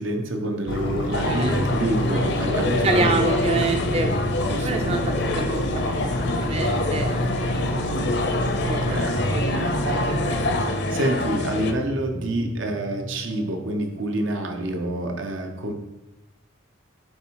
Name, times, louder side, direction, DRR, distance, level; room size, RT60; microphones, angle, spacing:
voice 1, 0.0-3.3 4.5-4.9 8.6-9.8 10.9-15.7, right 1 dB, 85° right, 3 dB, 1.0 m, -27 dB
sound 1, 0.7-10.7, left 1 dB, 90° left, 1.1 m, -28 dB
sound 2, 1.1-11.7, left 2 dB, 60° left, 0.6 m, -27 dB
voice 2, 1.1-1.6 2.7-6.0 6.4-7.9 8.7-8.8 9.2-10.4, right 3 dB, 30° right, 4 dB, 0.4 m, -28 dB
sound 3, 8.5-15.2, right 2 dB, 70° right, 2.0 m, -42 dB
7.7 x 3.6 x 4.7 m, 0.95 s
head